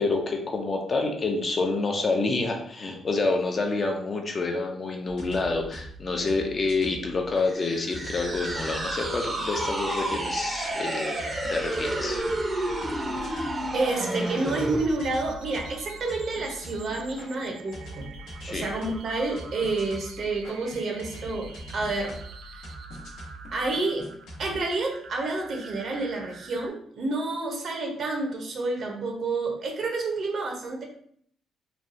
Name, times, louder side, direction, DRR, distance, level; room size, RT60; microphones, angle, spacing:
voice 1, 0.0-11.1 11.5-12.2 18.4-18.7, left 3 dB, 40° left, 2 dB, 0.5 m, -28 dB
sound 1, 5.1-7.5 7.9-10.7 11.2-24.6, equal, 80° left, 0.9 m, -43 dB
sound 2, 7.5-14.9, right 1 dB, 20° right, 0.6 m, -30 dB
sound 3, 7.5-26.7, right 5 dB, 75° right, 0.3 m, -47 dB
voice 2, 13.7-18.1 18.5-22.2 22.5-22.6 23.5-24.1 24.4-30.8, right 3 dB, 55° right, 1 dB, 0.7 m, -29 dB
3.1 x 2.3 x 2.6 m, 0.64 s
cardioid pair, 90°, 0 cm